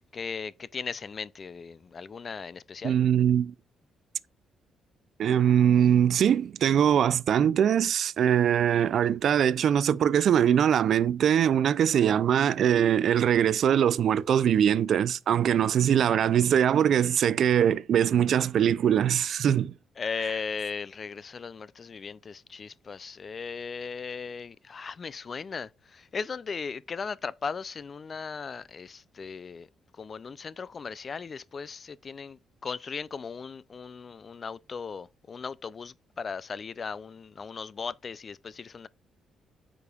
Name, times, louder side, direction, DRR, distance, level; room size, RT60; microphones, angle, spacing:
voice 1, 0.1-3.0 20.0-29.7 30.0-38.9, left 5 dB, 40° left, 0.3 m, -37 dB
voice 2, 2.8-3.5 5.2-19.7, right 9 dB, 65° right, 0.3 m, -22 dB
8.1 x 5.1 x 2.3 m
cardioid pair, 90°, 0 cm